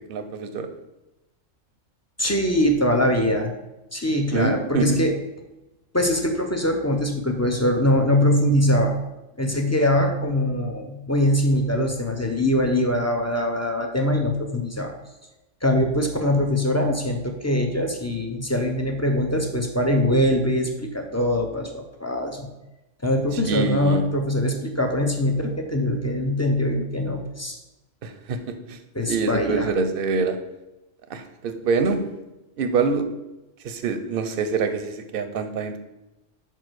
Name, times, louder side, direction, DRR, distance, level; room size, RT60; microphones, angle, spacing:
voice 1, 0.1-0.7 4.3-5.0 23.3-24.0 28.0-28.4 28.7-28.8 29.1-30.4 31.1-32.0 32.6-33.0 33.6-35.8, right 4 dB, 55° right, 8 dB, 0.8 m, -25 dB
voice 2, 2.2-3.5 3.9-5.1 5.9-9.0 9.4-14.9 15.6-22.5 23.0-27.6 28.9-29.7, left 1 dB, 20° left, 3 dB, 0.5 m, -22 dB
5.3 x 4.6 x 6.2 m, 1.0 s
omnidirectional pair, 1.3 m